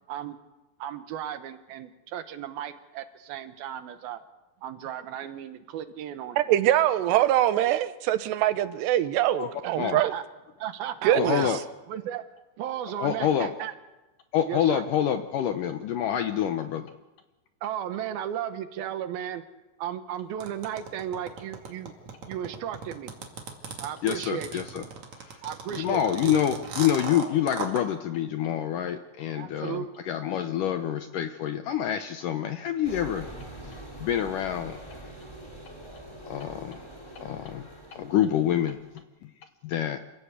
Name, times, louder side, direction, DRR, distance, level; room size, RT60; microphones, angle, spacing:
voice 1, 0.8-4.2 4.6-6.4 7.0-7.2 9.6-10.2 10.6-11.6 11.9-12.2 12.6-13.7 14.5-14.8 17.6-19.4 19.8-21.9 22.3-23.1 23.8-24.9 25.4-26.4 29.3-29.9, right 10 dB, 70° right, 2.8 m, -35 dB
voice 2, 6.4-10.1 11.0-11.4, right 13 dB, 90° right, 3.1 m, -23 dB
voice 3, 9.4-10.0 11.1-11.6 13.0-13.5 14.3-16.9 24.0-24.8 25.2-25.4 25.7-33.3 33.6-34.8 36.3-36.8 37.2-38.8 39.2-39.3 39.6-40.0, left 10 dB, 75° left, 2.0 m, -27 dB
sound 1, 20.4-27.8, right 5 dB, 50° right, 3.3 m, -37 dB
sound 2, 32.8-39.0, right 1 dB, 5° left, 3.2 m, -44 dB
27.5 x 16.0 x 8.2 m
omnidirectional pair, 4.7 m